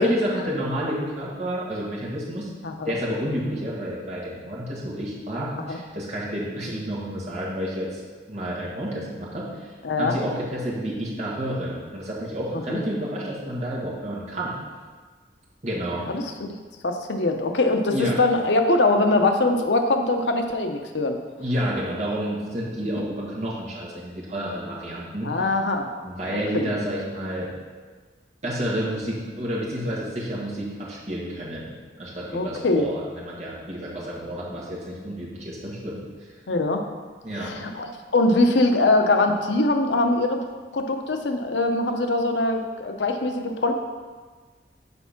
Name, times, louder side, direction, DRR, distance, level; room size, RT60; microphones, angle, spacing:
voice 1, 0.0-2.5 2.8-8.0 8.3-9.7 10.0-14.6 15.6-16.1 17.9-18.2 21.4-25.3 26.0-27.5 28.4-31.7 32.0-36.0 37.2-37.5, equal, 40° right, -6 dB, 1.8 m, -30 dB
voice 2, 16.1-16.6 16.8-21.2 25.2-25.9 26.3-26.7 32.3-32.9 36.5-36.8 37.3-40.4 40.7-43.7, left 2 dB, 85° left, 5 dB, 0.7 m, -22 dB
6.9 x 4.5 x 5.8 m, 1.4 s
head